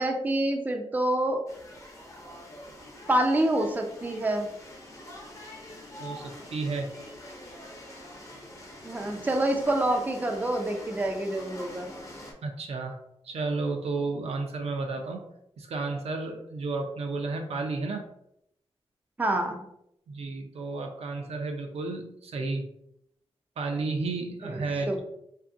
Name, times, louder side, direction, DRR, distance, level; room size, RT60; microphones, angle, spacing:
voice 1, 0.0-1.5 3.1-4.5 8.8-11.9 19.2-19.7 24.5-24.6 24.9-25.0, right 1 dB, 15° right, 3 dB, 0.4 m, -27 dB
sound 1, 1.5-12.3, left 1 dB, 30° left, 0.7 m, -45 dB
voice 2, 6.0-6.9 12.4-13.0 13.2-15.3 15.6-18.0 20.1-22.7 23.6-25.0, right 3 dB, 75° right, 3 dB, 0.5 m, -32 dB
2.6 x 2.6 x 2.5 m, 0.76 s
wide cardioid pair, 90°, 11 cm